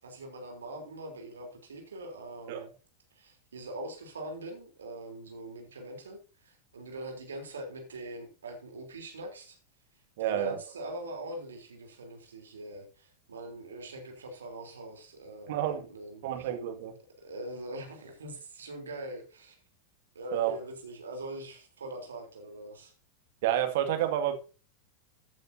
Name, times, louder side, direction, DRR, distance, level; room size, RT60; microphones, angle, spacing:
voice 1, 0.0-2.7 3.1-9.6 10.2-16.5 17.2-19.6 20.2-22.9, right 1 dB, 70° right, 3.5 m, -42 dB
voice 2, 10.2-10.6 15.5-15.8 16.2-16.9 20.3-20.6 23.4-24.4, right 11 dB, 50° right, 2.1 m, -29 dB
14.5 x 9.1 x 2.8 m
figure-of-eight pair, 90°, 0 cm